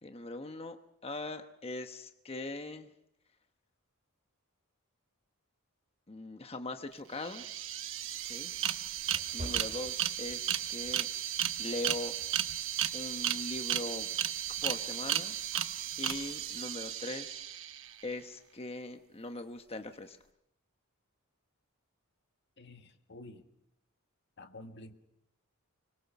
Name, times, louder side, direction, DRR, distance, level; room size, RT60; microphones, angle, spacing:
voice 1, 0.0-2.9 6.1-7.4 8.3-8.5 9.3-11.1 11.6-12.2 12.9-14.1 14.6-15.4 16.0-17.4 18.0-20.2, left 2 dB, 25° left, 7 dB, 1.1 m, -41 dB
sound 1, 6.9-7.0 7.2-18.0, right 11 dB, 60° right, 1.1 m, -34 dB
sound 2, 7.5-10.6 11.0-11.3 11.9-12.1, equal, 35° right, 4.7 m, -47 dB
voice 2, 22.6-23.4 24.4-24.9, left 2 dB, 50° left, 5 dB, 1.8 m, -50 dB
25.0 x 22.0 x 6.0 m, 0.79 s
head